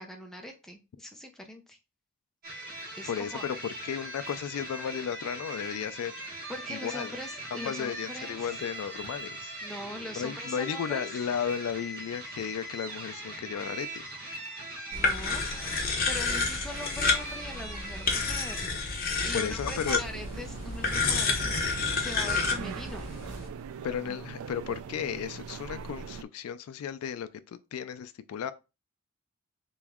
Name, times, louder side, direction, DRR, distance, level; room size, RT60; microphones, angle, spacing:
voice 1, 0.0-1.8 3.0-3.4 6.5-8.5 9.6-11.0 14.9-15.4 16.0-18.7 19.2-23.1 24.1-24.3, left 1 dB, ahead, 0.5 m, -41 dB
sound 1, 2.4-18.7, right 2 dB, 45° right, 1.6 m, -41 dB
voice 2, 3.1-6.2 6.7-7.2 7.5-9.5 10.2-14.1 19.3-20.0 23.8-28.5, left 8 dB, 85° left, 0.3 m, -34 dB
sound 2, 14.9-23.5, left 4 dB, 40° left, 0.8 m, -30 dB
sound 3, 19.6-26.2, right 6 dB, 80° right, 0.3 m, -42 dB
3.5 x 3.0 x 3.5 m
head